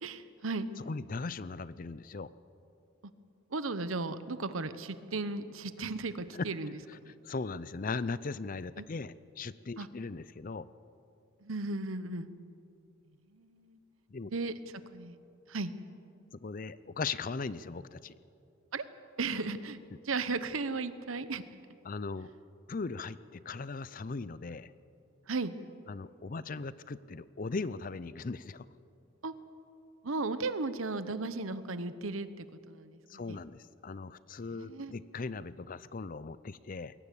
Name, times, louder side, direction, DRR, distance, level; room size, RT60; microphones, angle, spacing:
voice 1, 0.0-0.7 3.5-7.2 8.8-8.9 9.8-9.9 11.4-12.3 13.3-13.8 14.3-15.2 15.5-15.7 18.7-18.8 19.2-19.8 20.0-21.4 25.3-25.5 29.2-29.3 30.0-33.4 34.5-34.9, right 3 dB, 80° right, 13 dB, 1.0 m, -36 dB
voice 2, 0.9-2.3 6.3-6.4 7.2-10.7 14.1-14.3 16.3-18.1 21.8-22.3 22.7-24.7 25.9-28.7 33.1-36.9, left 4 dB, 40° left, 17 dB, 0.5 m, -38 dB
21.5 x 17.5 x 8.4 m, 2.6 s
head